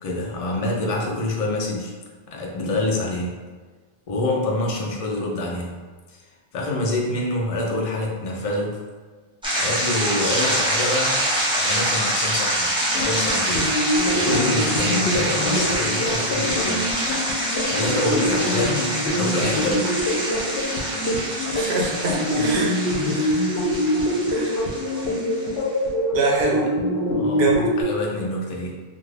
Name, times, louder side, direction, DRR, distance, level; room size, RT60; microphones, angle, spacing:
voice 1, 0.0-1.9 2.3-3.3 4.1-5.8 6.1-6.2 6.5-8.8 9.6-11.2 11.6-13.7 14.1-16.9 17.7-20.0 27.1-27.5 27.8-28.8, left 1 dB, 45° left, -1 dB, 0.5 m, -26 dB
sound 1, 9.4-25.6, right 1 dB, 5° right, 0.6 m, -25 dB
sound 2, 12.8-27.8, left 1 dB, 80° left, 0.8 m, -25 dB
voice 2, 21.5-22.8 23.1-23.5 24.3-24.6 26.1-26.7 27.3-27.7, right 3 dB, 85° right, 0 dB, 0.9 m, -25 dB
2.6 x 2.4 x 3.1 m, 1.4 s
omnidirectional pair, 1.0 m